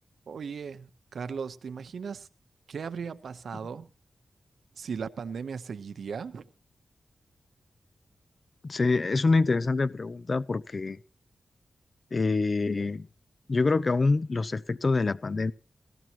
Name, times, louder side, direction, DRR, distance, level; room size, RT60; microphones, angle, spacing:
voice 1, 0.3-2.3 2.7-3.9 4.8-6.5, right 6 dB, 80° right, 0.8 m, -37 dB
voice 2, 8.6-11.0 12.1-13.1 13.5-15.5, left 3 dB, 45° left, 0.6 m, -26 dB
18.5 x 14.0 x 2.9 m
wide cardioid pair, 80°, 0 cm